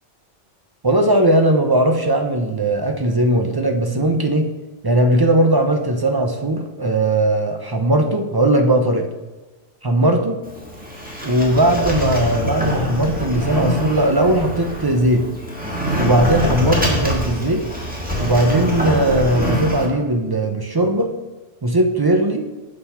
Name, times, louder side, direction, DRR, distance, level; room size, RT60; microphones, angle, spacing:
voice 1, 0.8-4.5 4.8-9.1 9.8-10.4 11.2-15.3 16.0-17.6 18.2-21.1 21.6-22.5, right 1 dB, 40° right, 5 dB, 0.3 m, -18 dB
Sliding door, 10.4-19.9, left 1 dB, 10° right, 1.3 m, -24 dB
7.6 x 4.2 x 5.6 m, 1.2 s
omnidirectional pair, 1.2 m